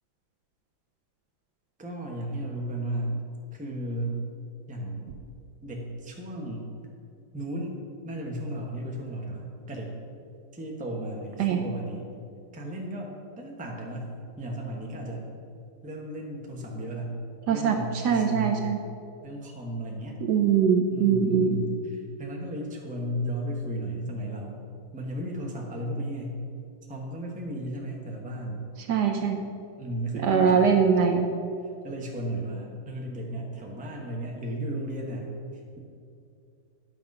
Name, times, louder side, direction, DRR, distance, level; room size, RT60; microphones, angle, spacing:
voice 1, 1.8-3.1 3.5-4.2 4.7-5.1 5.6-6.7 7.3-7.8 8.0-9.9 10.5-12.1 12.5-14.1 14.4-15.3 15.8-17.2 17.5-18.7 19.2-20.2 20.9-24.6 24.9-26.4 26.9-28.7 29.8-30.9 31.8-35.3, right 1 dB, 5° right, -1 dB, 0.8 m, -34 dB
voice 2, 18.0-18.8 20.2-21.6 28.9-29.4 30.2-31.3, right 6 dB, 70° right, 4 dB, 1.1 m, -22 dB
10.0 x 5.9 x 5.4 m, 2.5 s
omnidirectional pair, 2.1 m